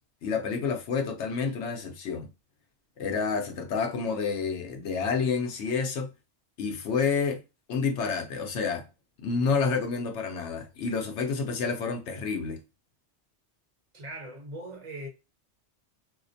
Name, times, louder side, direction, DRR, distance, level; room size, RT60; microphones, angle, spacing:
voice 1, 0.2-2.3 3.0-6.1 6.6-7.4 7.7-8.8 9.2-12.6, left 5 dB, 80° left, 0.9 m, -29 dB
voice 2, 13.9-15.1, right 1 dB, 40° right, 0.9 m, -40 dB
2.4 x 2.0 x 2.5 m
omnidirectional pair, 1.2 m